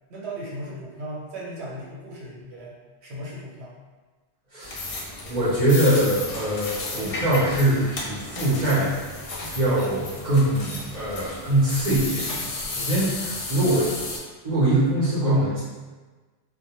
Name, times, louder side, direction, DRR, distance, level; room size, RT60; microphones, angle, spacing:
voice 1, 0.1-3.8, right 1 dB, 85° right, -5 dB, 1.0 m, -37 dB
voice 2, 4.5-4.9 5.3-8.9 9.5-13.9 14.4-15.6, right 1 dB, 45° right, -10 dB, 0.7 m, -23 dB
sound 1, 4.6-14.2, left 2 dB, 65° left, 0.7 m, -33 dB
2.2 x 2.2 x 2.8 m, 1.3 s
omnidirectional pair, 1.1 m